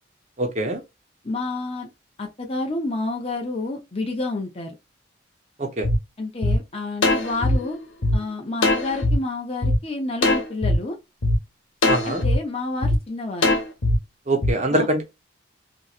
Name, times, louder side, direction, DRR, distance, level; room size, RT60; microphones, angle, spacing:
voice 1, 0.4-0.8 5.6-5.9 11.9-12.2 14.3-15.0, right 1 dB, 35° right, 0.7 m, -23 dB
voice 2, 1.2-1.9 2.2-4.8 6.2-7.8 8.1-11.0 12.0-13.5 14.7-14.9, left 2 dB, 30° left, 0.7 m, -29 dB
sound 1, 5.8-5.9 6.4-6.5 7.0-8.1 8.6-9.1 9.6-9.7 10.2-10.7 11.2-11.3 11.8-12.3 12.8-13.0 13.4-13.9 14.4-14.5, left 2 dB, 80° left, 1.1 m, -20 dB
3.0 x 2.7 x 2.4 m
head